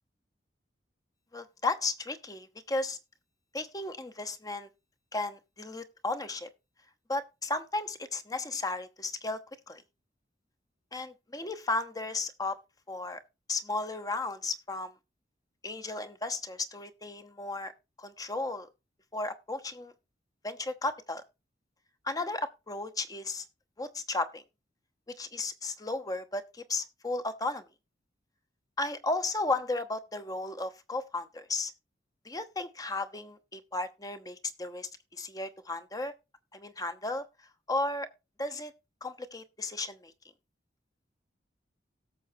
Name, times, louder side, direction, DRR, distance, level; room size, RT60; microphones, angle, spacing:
voice 1, 1.3-3.0 3.5-4.7 5.1-6.5 7.1-9.4 9.7-9.8 10.9-12.6 12.9-13.2 13.5-14.9 15.6-17.7 18.0-18.7 19.1-19.9 20.4-21.2 22.0-23.4 23.8-24.4 25.1-27.6 28.8-31.7 32.2-36.1 36.5-37.2 37.7-38.1 38.4-38.7 39.0-40.1, left 2 dB, 20° left, 9 dB, 0.9 m, -34 dB
17.5 x 7.0 x 2.7 m, 0.27 s
head